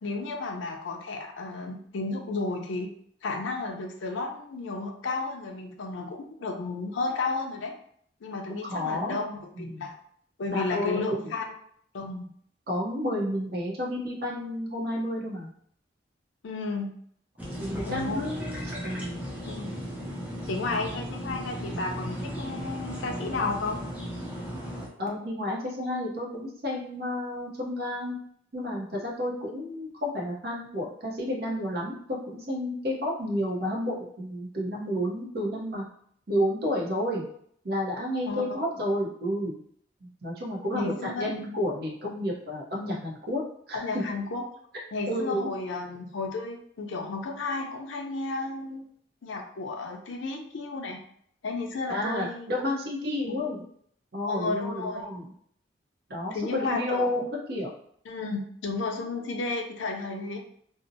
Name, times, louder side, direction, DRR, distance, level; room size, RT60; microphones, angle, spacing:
voice 1, 0.0-2.9 3.2-7.7 8.2-9.9 10.4-11.5 11.9-12.3 16.4-16.9 17.9-18.2 19.5-19.8 20.5-23.8 38.3-38.4 40.7-41.3 43.7-44.4 44.9-48.8 49.2-51.0 51.4-52.5 53.3-53.4 54.2-55.0 56.3-57.2 58.1-60.4, left 3 dB, 80° left, 3 dB, 0.5 m, -33 dB
voice 2, 8.6-9.2 9.6-9.9 10.5-11.2 12.7-15.5 17.6-19.2 25.0-28.2 28.5-35.8 36.3-37.2 37.6-39.6 40.0-43.4 43.7-44.0 45.1-45.5 51.9-53.6 54.1-55.3 56.1-57.7, left 1 dB, 55° right, -3 dB, 0.7 m, -31 dB
sound 1, 17.4-24.9, equal, 10° right, 0.4 m, -36 dB
2.7 x 2.0 x 2.6 m, 0.64 s
head